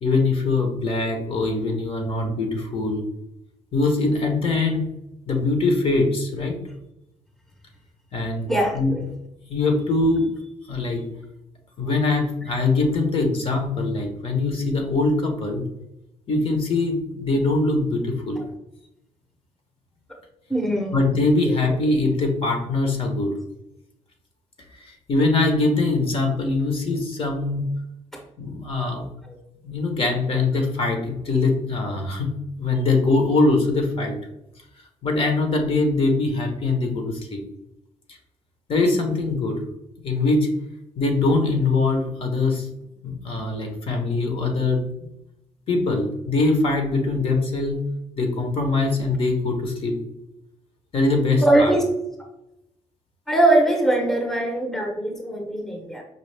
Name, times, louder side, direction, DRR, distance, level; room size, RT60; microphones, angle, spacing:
voice 1, 0.0-3.0 3.7-4.9 5.3-6.6 8.1-8.5 8.7-8.9 9.5-10.3 10.7-11.0 11.8-15.6 16.3-18.5 20.9-23.3 24.8-27.6 28.4-29.0 29.6-32.3 32.6-34.2 35.0-37.4 38.1-38.2 38.7-39.6 40.0-40.5 41.0-42.7 43.0-44.8 45.7-47.8 48.2-50.0 50.9-51.8, left 3 dB, 50° left, 3 dB, 0.9 m, -22 dB
voice 2, 8.5-9.0 20.5-21.0 29.3-29.4 51.4-51.8 53.3-56.0, right 1 dB, 5° left, 1 dB, 0.7 m, -21 dB
5.3 x 2.3 x 3.3 m, 0.85 s
cardioid pair, 130°, 12 cm